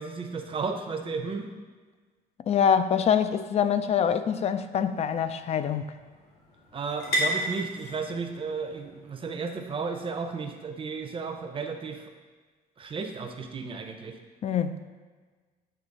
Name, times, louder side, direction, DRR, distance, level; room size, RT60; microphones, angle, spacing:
voice 1, 0.0-1.5 6.7-12.1 12.8-14.2, right 4 dB, 30° right, 5 dB, 0.7 m, -33 dB
voice 2, 2.5-5.9 14.4-14.8, left 8 dB, 40° left, 11 dB, 0.4 m, -25 dB
sound 1, 4.0-11.4, equal, 85° left, 2.0 m, -37 dB
8.4 x 3.0 x 5.2 m, 1.4 s
cardioid pair, 110°, 17 cm